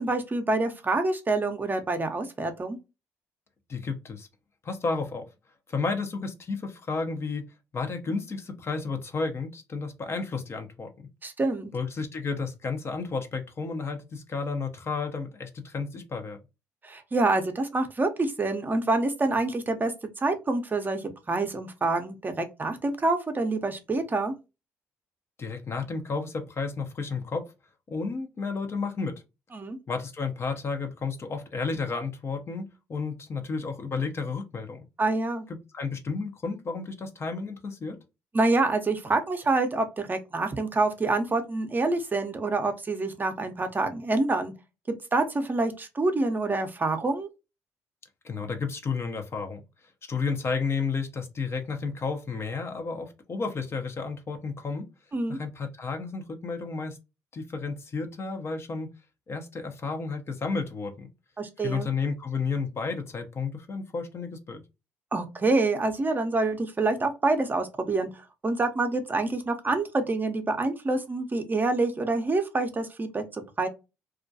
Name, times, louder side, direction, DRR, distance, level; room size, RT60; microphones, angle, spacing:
voice 1, 0.0-2.8 11.2-11.7 16.8-24.3 29.5-29.8 35.0-35.5 38.3-44.5 45.1-47.3 55.1-55.4 61.4-61.9 65.1-73.7, right 3 dB, 30° right, 0.6 m, -27 dB
voice 2, 3.7-4.3 4.6-5.3 5.7-7.4 7.7-10.9 11.7-16.4 25.4-27.5 27.9-29.2 29.9-34.8 35.5-38.0 48.2-49.6 50.1-54.9 55.3-57.0 57.3-58.9 59.3-61.1 61.6-64.6, left 4 dB, 40° left, 0.6 m, -32 dB
2.3 x 2.2 x 2.6 m
supercardioid pair, 60°, 6 cm